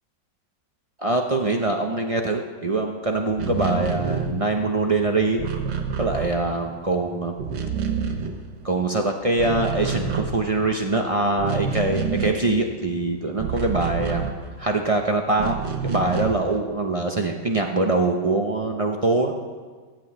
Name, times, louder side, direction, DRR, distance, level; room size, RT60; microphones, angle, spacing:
voice 1, 1.0-5.4 6.0-7.3 8.6-15.6 15.8-19.4, right 2 dB, 65° right, 3 dB, 0.3 m, -23 dB
sound 1, 3.3-7.0 7.2-8.9 9.2-14.9 15.3-16.6, right 6 dB, 85° right, 1.8 m, -28 dB
17.5 x 6.1 x 8.6 m, 1.5 s
omnidirectional pair, 1.9 m